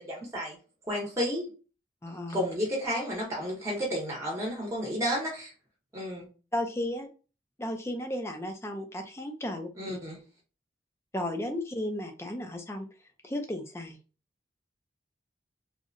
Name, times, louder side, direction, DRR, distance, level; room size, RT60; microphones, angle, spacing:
voice 1, 0.9-1.5 2.3-5.5 5.9-6.3 9.8-10.2, equal, 15° right, -2 dB, 0.7 m, -31 dB
voice 2, 2.0-2.5 6.5-7.1 7.6-10.0 11.1-12.9 13.2-14.0, left 1 dB, 15° left, 4 dB, 0.4 m, -34 dB
2.7 x 2.1 x 2.5 m, 0.34 s
head